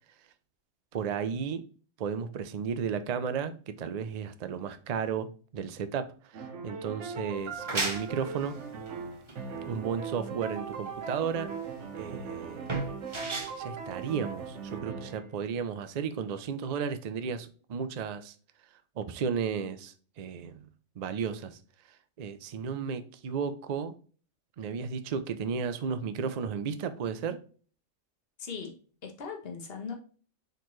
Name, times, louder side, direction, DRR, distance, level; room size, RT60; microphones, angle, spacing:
voice 1, 0.9-1.6 2.0-3.5 3.8-5.3 5.5-8.5 9.7-11.5 11.9-12.7 13.6-18.3 19.0-20.7 21.0-21.6 22.2-23.9 24.6-27.4, right 6 dB, 90° right, 0.3 m, -33 dB
sound 1, 6.3-15.3, right 5 dB, 65° right, 1.0 m, -39 dB
sound 2, 7.4-14.8, right 3 dB, 25° right, 0.8 m, -37 dB
voice 2, 28.4-28.7 29.0-29.9, left 5 dB, 50° left, 1.2 m, -39 dB
4.4 x 3.9 x 3.0 m
omnidirectional pair, 1.4 m